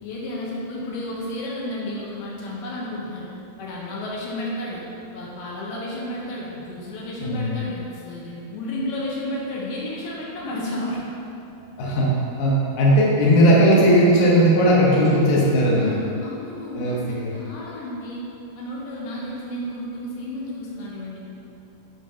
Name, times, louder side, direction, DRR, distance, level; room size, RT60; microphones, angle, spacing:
voice 1, 0.0-3.3 3.6-4.8 5.1-11.0 15.0-18.3 18.6-21.2, left 1 dB, 80° left, -4 dB, 2.8 m, -32 dB
voice 2, 12.4-15.9 16.8-17.3, equal, 65° left, -5 dB, 2.2 m, -17 dB
7.7 x 3.1 x 5.6 m, 2.8 s
omnidirectional pair, 4.7 m